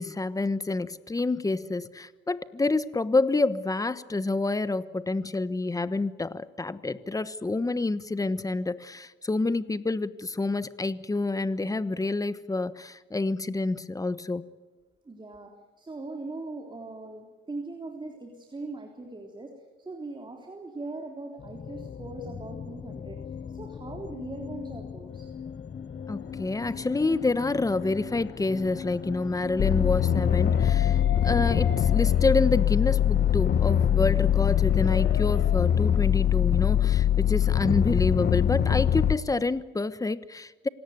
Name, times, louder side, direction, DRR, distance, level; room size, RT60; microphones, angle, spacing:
voice 1, 0.0-14.4 26.1-40.7, left 3 dB, 15° left, 15 dB, 1.2 m, -28 dB
voice 2, 15.1-25.3, right 2 dB, 25° right, 3 dB, 3.6 m, -40 dB
sound 1, 21.4-35.4, left 6 dB, 40° left, 0.9 m, -38 dB
sound 2, 25.7-35.6, left 6 dB, 80° left, 5.4 m, -44 dB
sound 3, 29.6-39.1, left 10 dB, 55° left, 1.2 m, -23 dB
26.5 x 18.0 x 9.5 m, 1.3 s
cardioid pair, 90°, 20 cm